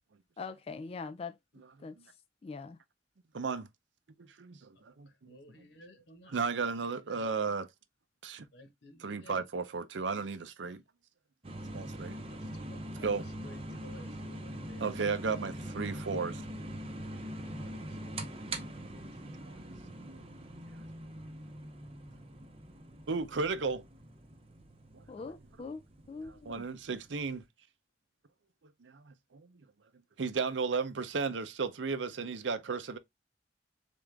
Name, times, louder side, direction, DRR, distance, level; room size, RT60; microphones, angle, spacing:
voice 1, 0.4-1.4 1.8-2.0 2.4-2.8 25.1-26.6, left 4 dB, 30° left, 0.3 m, -42 dB
voice 2, 3.3-3.7 4.2-4.7 6.3-7.7 8.2-8.4 9.0-10.8 11.7-12.2 13.0-13.3 14.8-16.4 19.2-19.6 20.0-20.2 23.1-23.8 24.9-25.0 26.5-27.4 28.8-29.5 30.2-33.0, right 4 dB, 85° right, 0.6 m, -34 dB
voice 3, 5.3-6.3 7.2-7.3 8.5-9.4 12.3-13.1 13.4-14.8 15.9-16.1 17.2-18.4, left 1 dB, 70° left, 1.3 m, -55 dB
sound 1, 11.4-27.4, right 1 dB, 30° right, 0.7 m, -43 dB
3.8 x 3.6 x 3.4 m
head